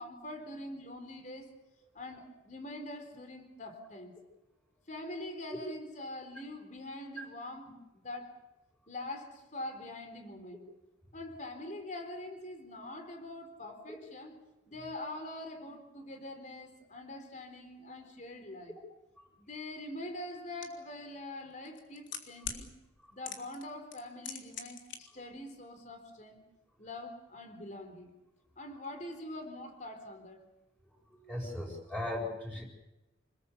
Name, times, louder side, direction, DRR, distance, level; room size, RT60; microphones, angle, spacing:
voice 1, 0.0-1.5 1.9-4.1 4.9-7.7 7.9-8.4 8.9-10.6 11.1-14.3 14.7-18.7 19.4-22.7 23.1-26.4 26.8-28.1 28.6-30.4, left 1 dB, 40° left, 7 dB, 4.0 m, -44 dB
sound 1, 20.6-20.7 21.6-22.6 23.2-23.6 23.9-25.0 25.2-25.3, left 8 dB, 80° left, 3.6 m, -40 dB
voice 2, 31.3-32.6, left 1 dB, 10° left, -2 dB, 6.9 m, -37 dB
27.5 x 20.5 x 7.2 m, 0.98 s
head